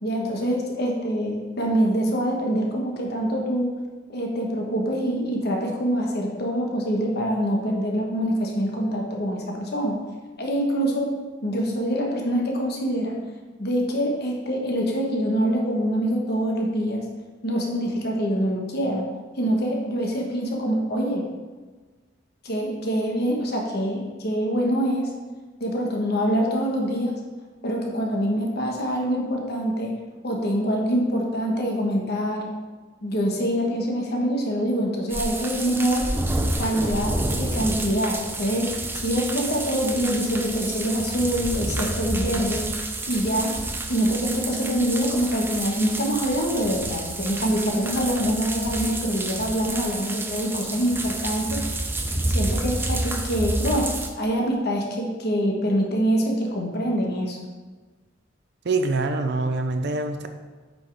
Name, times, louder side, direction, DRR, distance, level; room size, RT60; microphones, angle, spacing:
voice 1, 0.0-3.8 4.1-10.0 10.4-11.1 11.4-13.2 13.6-17.0 17.4-19.1 19.4-21.3 22.4-25.1 25.6-27.2 27.6-30.0 30.2-32.5 33.0-36.1 36.6-42.7 43.1-43.6 43.9-51.6 52.3-57.4, equal, 55° left, 0 dB, 1.3 m, -25 dB
sound 1, 35.1-54.1, right 2 dB, 10° right, 0.5 m, -29 dB
voice 2, 58.6-60.3, right 3 dB, 60° right, 6 dB, 0.5 m, -25 dB
8.3 x 5.5 x 3.4 m, 1.4 s
head